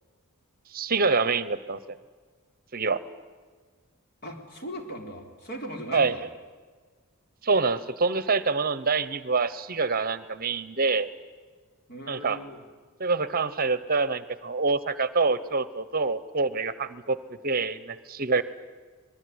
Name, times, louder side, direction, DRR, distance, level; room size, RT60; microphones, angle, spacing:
voice 1, 0.7-2.0 2.7-3.0 5.9-6.2 7.4-11.1 12.1-12.4 13.0-17.2 17.4-18.4, right 4 dB, 45° right, 15 dB, 0.9 m, -26 dB
voice 2, 4.2-6.2 11.9-12.6, equal, 50° left, 3 dB, 3.9 m, -39 dB
25.5 x 20.5 x 9.5 m, 1.5 s
head